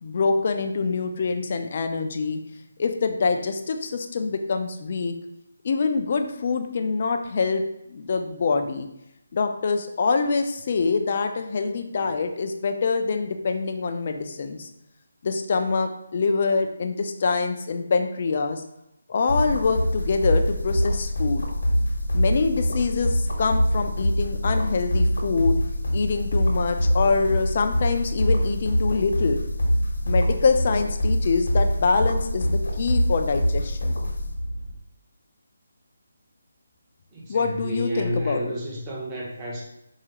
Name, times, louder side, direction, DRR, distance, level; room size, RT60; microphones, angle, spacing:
voice 1, 0.0-2.4 2.8-5.2 5.6-7.6 7.9-8.9 9.3-14.7 15.2-18.6 19.1-21.5 22.1-25.6 25.9-29.4 30.1-34.0 37.3-38.5, left 4 dB, 40° left, 6 dB, 0.4 m, -25 dB
sound 1, 19.3-34.7, equal, 75° left, 0.9 m, -24 dB
voice 2, 37.1-39.6, equal, 20° right, -4 dB, 0.7 m, -31 dB
4.7 x 2.4 x 2.9 m, 0.83 s
hypercardioid pair, 165°, 0 cm